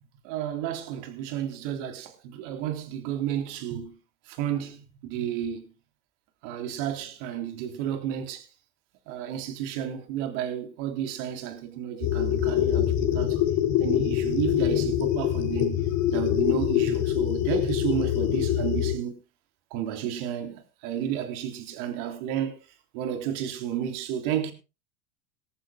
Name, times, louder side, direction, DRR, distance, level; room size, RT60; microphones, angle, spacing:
voice 1, 0.2-3.9 4.3-5.6 6.4-8.5 9.1-13.4 13.8-19.1 19.7-22.5 22.9-24.5, right 10 dB, 60° right, 3.5 m, -32 dB
sound 1, 12.0-19.0, left 11 dB, 55° left, 2.7 m, -24 dB
19.5 x 14.0 x 2.3 m
hypercardioid pair, 95°, 40 cm